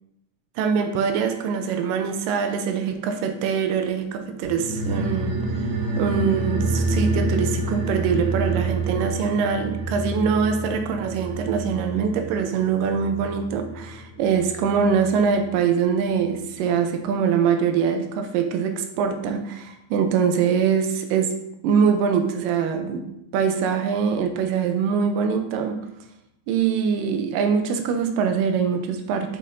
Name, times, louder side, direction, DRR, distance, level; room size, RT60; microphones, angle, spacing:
voice 1, 0.6-5.4 6.0-21.4 21.6-25.8 26.5-29.4, right 6 dB, 85° right, 6 dB, 2.2 m, -23 dB
sound 1, 4.4-15.3 15.6-15.7, right 2 dB, 70° right, 2.6 m, -28 dB
6.4 x 5.8 x 2.5 m, 0.82 s
omnidirectional pair, 3.8 m